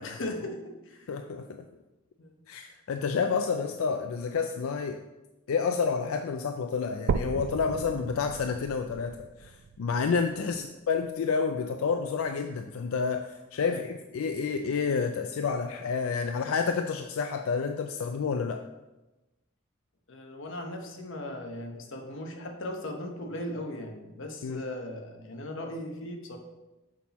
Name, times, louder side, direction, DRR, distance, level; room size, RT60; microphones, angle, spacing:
voice 1, 0.0-1.2 2.2-2.4 10.4-10.6 13.7-13.9 20.1-26.4, left 1 dB, 65° left, 3 dB, 1.0 m, -38 dB
voice 2, 1.1-1.6 2.5-5.0 5.5-18.6 24.4-24.6, left 5 dB, 90° left, 6 dB, 0.4 m, -29 dB
sound 1, 7.1-11.1 11.6-11.7 12.3-12.4 12.7-12.8 13.7-13.8, right 5 dB, 60° right, 0.3 m, -35 dB
6.4 x 5.7 x 4.1 m, 1.1 s
head